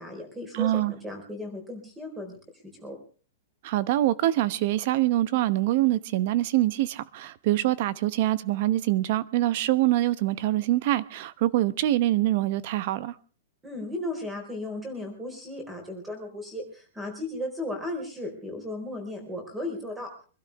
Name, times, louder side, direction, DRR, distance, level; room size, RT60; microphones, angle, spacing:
voice 1, 0.0-2.4 2.8-2.9 13.6-20.1, left 1 dB, 5° right, 4.3 m, -35 dB
voice 2, 0.5-0.9 3.6-13.1, right 15 dB, 40° right, 0.9 m, -24 dB
25.0 x 12.5 x 3.5 m
supercardioid pair, 175°, 0 cm